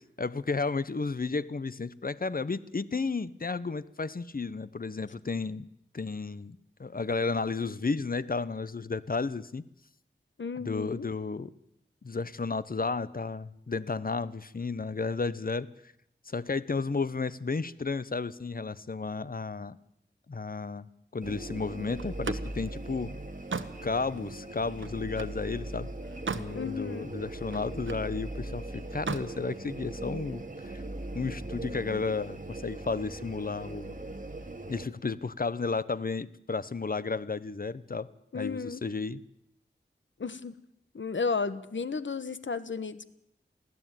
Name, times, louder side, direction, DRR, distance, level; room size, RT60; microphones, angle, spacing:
voice 1, 0.2-5.7 5.9-9.6 10.6-11.5 12.0-15.7 16.3-19.8 20.3-23.2 23.8-25.9 26.3-30.8 31.1-34.0 34.7-38.1 38.3-39.2, left 4 dB, 50° left, 17 dB, 0.9 m, -33 dB
voice 2, 10.4-11.1 26.5-27.1 38.3-38.8 40.2-40.6 40.9-43.0, left 5 dB, 75° left, 14 dB, 1.3 m, -33 dB
sound 1, 21.2-34.8, right 2 dB, 45° right, 3.1 m, -40 dB
Slam, 22.0-25.4 25.9-26.6 26.9-28.1 28.9-29.3, right 5 dB, 90° right, 1.2 m, -38 dB
23.5 x 15.5 x 9.1 m, 0.78 s
wide cardioid pair, 65°, 19 cm